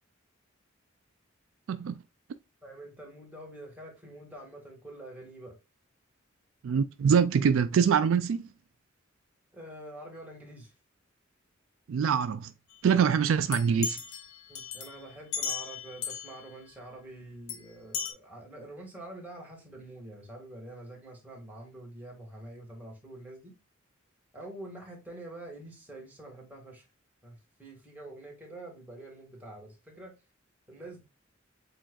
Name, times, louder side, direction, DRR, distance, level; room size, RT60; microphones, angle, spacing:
voice 1, 2.6-5.6 9.5-10.7 14.5-23.5 24.3-26.8 27.2-30.1 30.7-31.0, right 1 dB, 10° right, 1.7 m, -46 dB
voice 2, 6.6-8.4 11.9-12.5 12.8-14.0, right 7 dB, 70° right, 0.3 m, -24 dB
sound 1, 13.5-16.4 17.5-17.6 17.9-18.1, left 7 dB, 75° left, 0.8 m, -36 dB
7.6 x 2.6 x 2.3 m
head